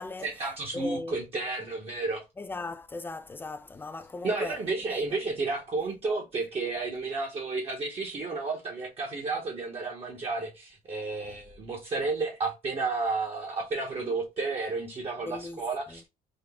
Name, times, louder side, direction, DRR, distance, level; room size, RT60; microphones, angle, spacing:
voice 1, 0.2-2.2 4.2-16.1, right 3 dB, 35° right, 0.9 m, -32 dB
voice 2, 0.7-1.2 2.4-4.6 4.9-5.0 15.3-15.6 15.9-16.0, left 2 dB, 10° left, 0.4 m, -37 dB
3.7 x 2.1 x 3.5 m
cardioid pair, 110°, 17 cm